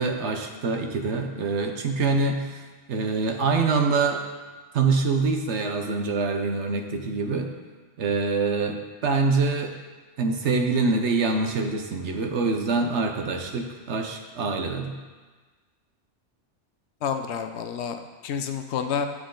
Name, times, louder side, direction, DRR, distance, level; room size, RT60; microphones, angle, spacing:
voice 1, 0.0-2.6 2.9-4.2 4.7-7.5 8.0-9.7 10.2-15.0, right 4 dB, 75° right, 4 dB, 1.1 m, -25 dB
voice 2, 17.0-19.1, left 7 dB, 70° left, 7 dB, 0.9 m, -29 dB
10.0 x 6.2 x 3.8 m, 1.4 s
omnidirectional pair, 1.2 m